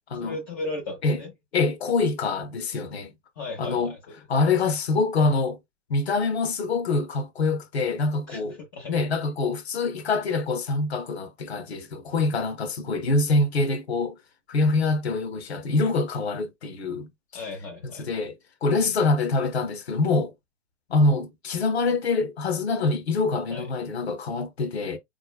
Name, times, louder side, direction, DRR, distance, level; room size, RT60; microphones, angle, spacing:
voice 1, 0.2-1.3 3.4-4.3 8.3-9.0 17.3-18.2 18.7-19.0 23.5-23.7, left 2 dB, 20° left, 0.4 m, -36 dB
voice 2, 1.5-3.1 3.6-3.9 4.3-5.6 5.9-8.5 8.9-14.2 14.5-17.1 18.0-20.3 20.9-25.0, left 3 dB, 60° left, 1.0 m, -25 dB
4.1 x 3.3 x 2.2 m
figure-of-eight pair, 115°, 37 cm